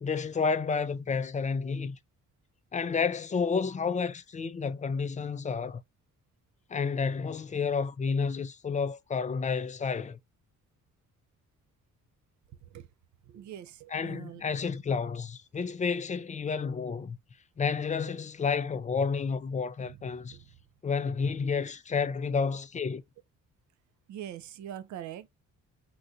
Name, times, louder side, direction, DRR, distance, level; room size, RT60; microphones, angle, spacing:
voice 1, 0.0-2.0 2.7-5.8 6.7-10.2 13.9-17.2 17.6-20.4 20.8-23.0, left 5 dB, 25° left, 0.4 m, -30 dB
voice 2, 13.2-14.4 19.8-20.5 24.1-25.3, right 10 dB, 70° right, 0.6 m, -43 dB
3.8 x 2.3 x 2.5 m
cardioid pair, 90°, 30 cm